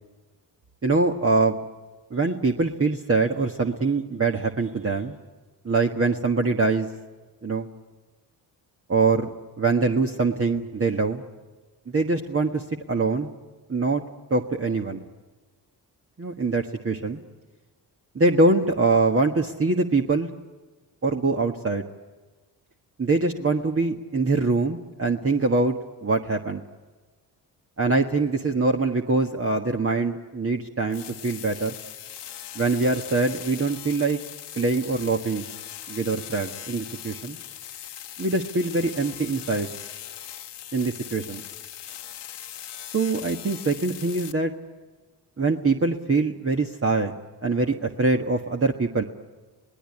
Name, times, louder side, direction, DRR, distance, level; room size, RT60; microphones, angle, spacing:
voice 1, 0.8-1.6 2.1-5.1 5.6-6.9 7.4-7.7 8.9-11.2 11.9-13.3 13.7-14.0 14.3-15.0 16.2-17.2 18.1-20.3 21.0-21.9 23.0-25.8 26.0-26.6 27.8-31.8 32.5-34.2 34.6-35.5 35.9-37.4 38.2-39.7 40.7-41.4 42.9-44.5 45.4-47.1 47.4-49.0, right 3 dB, 35° right, 3 dB, 1.5 m, -23 dB
sound 1, 30.9-44.3, left 11 dB, 85° left, 1.3 m, -40 dB
27.0 x 19.5 x 9.9 m, 1.3 s
cardioid pair, 75°, 41 cm